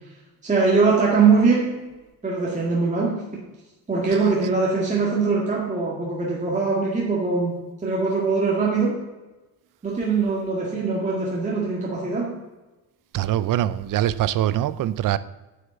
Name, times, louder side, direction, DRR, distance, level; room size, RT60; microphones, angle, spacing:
voice 1, 0.4-1.8 2.2-3.2 3.9-9.0 9.8-12.3, right 4 dB, 20° right, 1.8 m, -22 dB
voice 2, 13.1-15.2, right 12 dB, 55° right, 0.5 m, -23 dB
9.5 x 6.6 x 7.9 m
cardioid pair, 165°, 40 cm